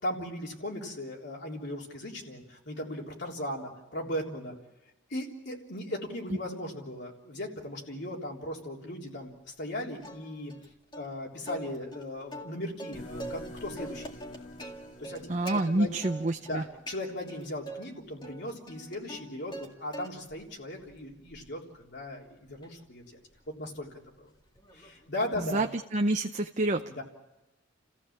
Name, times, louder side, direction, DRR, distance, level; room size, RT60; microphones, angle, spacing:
voice 1, 0.0-4.5 5.1-10.5 11.0-14.5 15.0-15.9 16.4-23.2 23.5-23.9 24.2-24.3 24.7-25.6 26.9-27.0, left 1 dB, 60° left, -1 dB, 3.5 m, -38 dB
Plucked string instrument, 10.0-10.7 10.9-11.1 11.5-13.5 13.8-15.6 16.0-16.6 16.9-17.8 18.2-19.7 19.9-20.4 20.8-25.1, right 1 dB, 25° left, 2.2 m, -44 dB
sound 1, 12.9-16.9, left 1 dB, 40° left, 2.0 m, -46 dB
voice 2, 15.3-16.6 25.4-25.7 25.9-26.8, right 2 dB, 40° right, 5 dB, 0.7 m, -27 dB
30.0 x 15.0 x 7.3 m, 0.98 s
head